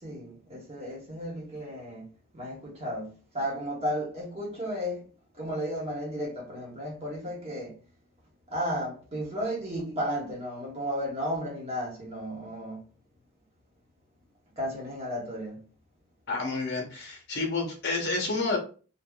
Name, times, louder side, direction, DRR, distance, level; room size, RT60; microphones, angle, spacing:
voice 1, 0.0-2.1 2.3-5.0 5.3-7.8 8.5-12.9 14.6-15.7, equal, 30° right, 1.1 m, -34 dB
voice 2, 16.3-18.6, left 3 dB, 55° left, 0.9 m, -29 dB
3.5 x 2.2 x 2.3 m
head